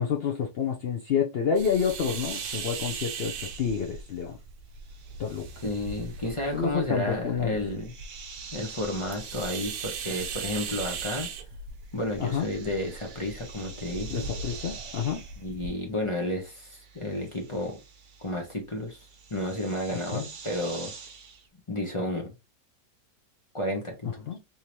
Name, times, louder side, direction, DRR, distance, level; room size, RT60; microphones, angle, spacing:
voice 1, 0.0-4.4 5.2-5.5 6.5-7.6 12.2-12.5 14.1-15.2 20.1-20.3 24.3-24.4, left 7 dB, 75° left, 0.5 m, -28 dB
sound 1, 1.6-15.7, right 5 dB, 85° right, 1.3 m, -39 dB
sound 2, 1.7-11.5 11.7-21.5, right 5 dB, 70° right, 0.4 m, -47 dB
voice 2, 5.6-7.9 8.5-11.3 11.9-14.3 15.4-17.8 18.2-20.9 21.7-22.3 23.5-24.3, left 1 dB, 30° left, 0.6 m, -32 dB
3.6 x 2.8 x 3.0 m
omnidirectional pair, 1.8 m